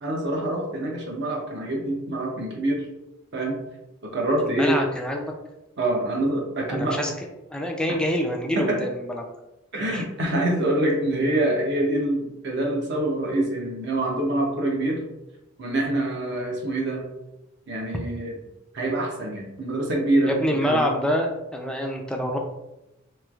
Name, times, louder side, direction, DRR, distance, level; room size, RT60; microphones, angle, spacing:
voice 1, 0.0-2.9 3.3-3.6 4.0-4.8 5.8-7.0 8.6-8.8 9.7-15.0 15.6-17.0 17.7-18.3 18.7-20.9, right 1 dB, 55° right, 0 dB, 0.7 m, -25 dB
voice 2, 4.4-5.3 6.7-7.1 7.5-9.2 9.8-10.0 20.3-22.4, equal, 5° left, 1 dB, 0.3 m, -26 dB
3.1 x 2.9 x 2.4 m, 0.94 s
head